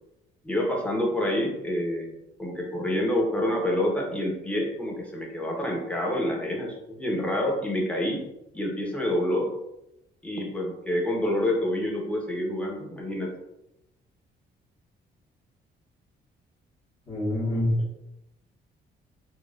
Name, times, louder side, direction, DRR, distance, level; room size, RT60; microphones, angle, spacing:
voice 1, 0.4-8.2 8.5-9.5 10.2-13.3, left 1 dB, 5° left, -2 dB, 1.0 m, -27 dB
voice 2, 17.1-18.0, left 1 dB, 40° left, -12 dB, 1.4 m, -26 dB
4.5 x 2.4 x 2.4 m, 0.88 s
cardioid pair, 90°, 20 cm